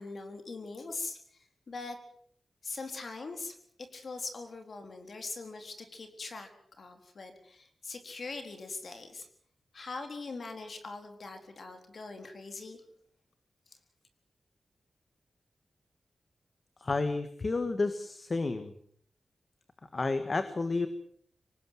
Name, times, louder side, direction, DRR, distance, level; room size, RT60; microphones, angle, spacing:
voice 1, 0.0-2.0 2.6-6.5 6.8-9.3 9.7-12.8, left 3 dB, 50° left, 6 dB, 4.1 m, -42 dB
voice 2, 16.8-18.7 19.9-20.9, left 3 dB, 35° left, 10 dB, 1.7 m, -31 dB
25.5 x 19.0 x 7.8 m, 0.63 s
wide cardioid pair, 150°, 0 cm